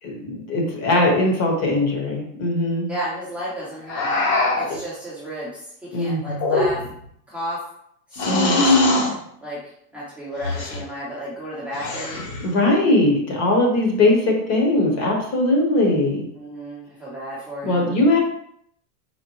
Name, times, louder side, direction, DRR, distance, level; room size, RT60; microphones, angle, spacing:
voice 1, 0.0-2.9 5.9-6.2 8.3-8.6 12.4-16.2 17.6-18.2, left 2 dB, 30° left, 0 dB, 1.0 m, -20 dB
voice 2, 2.9-6.8 7.3-7.6 8.1-8.6 9.4-9.6 9.9-12.2 16.3-18.0, right 1 dB, 5° right, -10 dB, 0.7 m, -33 dB
sound 1, 3.9-4.8 6.3-7.0 8.1-9.1 10.4-10.8 11.7-12.4, left 2 dB, 65° left, 1.4 m, -21 dB
4.3 x 2.1 x 3.0 m, 0.68 s
supercardioid pair, 135°, 49 cm